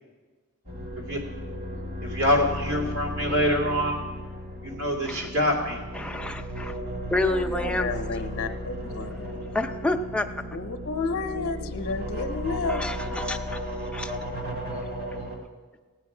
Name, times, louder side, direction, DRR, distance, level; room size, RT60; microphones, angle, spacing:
sound 1, 0.6-15.4, equal, 45° right, 2.2 m, -35 dB
voice 1, 2.0-4.0 4.6-5.8 11.1-11.7, equal, 70° right, 0 dB, 2.6 m, -25 dB
voice 2, 5.9-6.7 7.1-7.9 9.5-10.3 12.7-13.6 13.9-14.2, left 2 dB, 5° left, 4 dB, 0.5 m, -29 dB
voice 3, 7.3-9.4 10.5-12.9, left 4 dB, 60° left, 5 dB, 0.7 m, -31 dB
17.5 x 8.6 x 4.8 m, 1.3 s
head